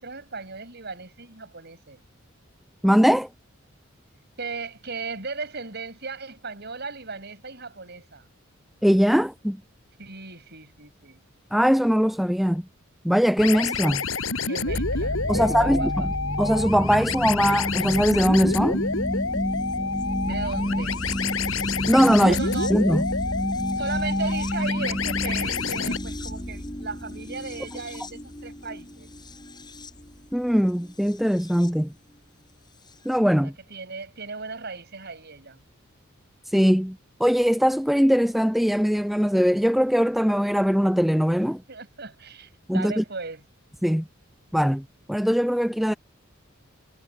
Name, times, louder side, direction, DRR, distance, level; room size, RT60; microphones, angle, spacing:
voice 1, 0.0-2.0 4.4-8.2 10.0-11.2 14.5-16.1 20.2-21.0 22.2-22.7 23.8-29.1 33.7-35.6 41.7-43.4, right 4 dB, 55° right, 7.8 m, -36 dB
voice 2, 2.8-3.3 8.8-9.6 11.5-12.6 13.0-14.0 15.3-15.9 16.4-18.8 21.9-22.4 22.7-23.0 30.3-31.9 33.1-33.5 36.5-41.6 42.7-43.0 43.8-44.0 44.5-44.8 45.1-45.9, equal, ahead, 0.3 m, -21 dB
sound 1, 13.4-26.0, left 4 dB, 85° left, 7.9 m, -29 dB
sound 2, 14.7-31.7 32.9-33.0, equal, 20° left, 6.9 m, -31 dB
head